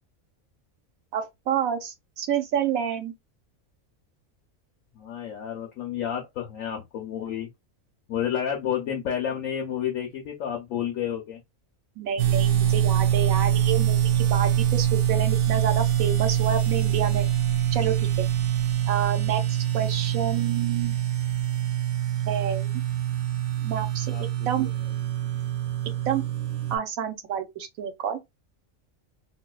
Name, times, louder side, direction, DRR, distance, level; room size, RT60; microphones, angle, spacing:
voice 1, 1.1-3.1 12.0-17.3 17.7-18.2 18.9-21.0 22.3-22.7 23.6-24.1 24.5-24.7 26.1-26.2 26.7-28.2, right 8 dB, 90° right, 1.2 m, -29 dB
voice 2, 5.0-7.5 8.1-11.4 24.1-24.2, left 9 dB, 80° left, 1.1 m, -30 dB
sound 1, 12.2-26.8, right 11 dB, 70° right, 0.9 m, -24 dB
3.9 x 2.3 x 2.2 m
omnidirectional pair, 1.4 m